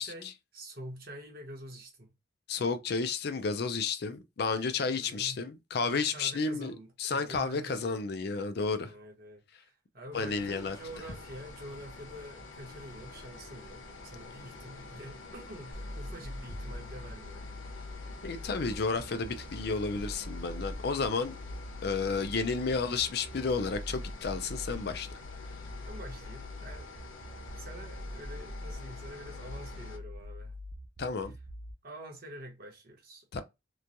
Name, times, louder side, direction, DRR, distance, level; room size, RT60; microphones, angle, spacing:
voice 1, 0.0-2.1 4.9-5.4 5.9-8.0 8.8-17.5 22.7-22.8 25.8-26.9 27.6-30.6 31.8-33.4, right 1 dB, 50° right, 0.9 m, -47 dB
voice 2, 2.5-8.9 10.1-10.8 18.2-21.3 21.8-25.1 31.0-31.3 33.3-33.4, left 4 dB, 55° left, 0.4 m, -32 dB
sound 1, 10.1-30.0, left 3 dB, 75° left, 0.9 m, -48 dB
sound 2, 15.7-31.7, left 1 dB, 30° right, 0.4 m, -43 dB
3.0 x 2.2 x 2.5 m
head